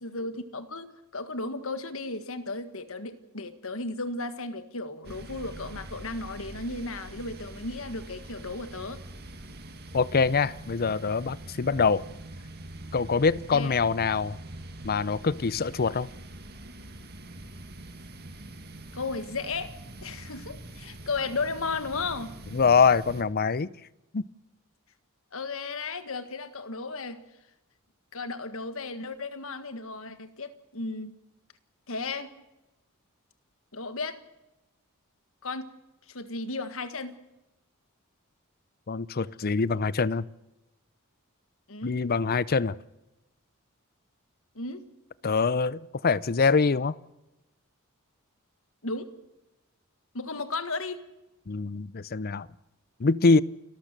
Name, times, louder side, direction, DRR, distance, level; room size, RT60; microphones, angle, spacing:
voice 1, 0.0-9.0 13.5-13.8 18.9-19.7 20.0-22.3 25.3-27.2 28.1-31.1 31.9-32.3 33.7-34.2 35.4-35.7 36.1-37.2 41.7-42.0 44.5-44.8 48.8-49.1 50.1-51.0, left 3 dB, 65° left, 1.7 m, -34 dB
sound 1, 5.0-23.2, right 1 dB, 50° right, 2.2 m, -44 dB
voice 2, 9.9-12.1 12.9-14.4 14.8-16.1 22.5-23.7 24.1-24.2 38.9-40.3 41.8-42.8 45.2-46.9 51.5-52.5 53.0-53.4, left 4 dB, 45° left, 0.6 m, -24 dB
29.0 x 13.5 x 6.7 m
head